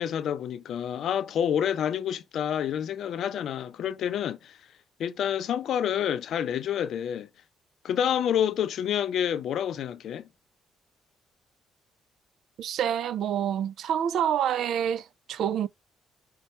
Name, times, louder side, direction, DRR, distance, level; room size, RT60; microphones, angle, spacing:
voice 1, 0.0-4.6 5.0-7.3 7.8-10.3, left 9 dB, 70° left, 0.5 m, -28 dB
voice 2, 12.6-15.7, right 9 dB, 75° right, 0.3 m, -27 dB
5.4 x 2.2 x 4.2 m
cardioid pair, 90°, 0 cm